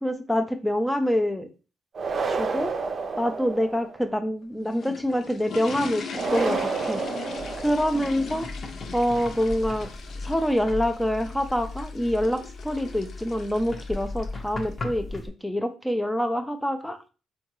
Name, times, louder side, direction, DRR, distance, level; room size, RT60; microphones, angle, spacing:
voice 1, 0.0-1.5 2.3-2.8 3.2-6.0 6.3-7.0 7.6-8.5 8.9-9.9 10.2-17.0, equal, 5° left, 7 dB, 0.4 m, -26 dB
sound 1, 1.9-4.0 6.1-8.2, right 4 dB, 50° right, 0.5 m, -30 dB
sound 2, 4.4-14.7, left 5 dB, 60° left, 0.5 m, -39 dB
sound 3, 7.4-15.3, left 2 dB, 35° left, 0.8 m, -37 dB
3.5 x 2.3 x 3.0 m, 0.34 s
cardioid pair, 90°, 0 cm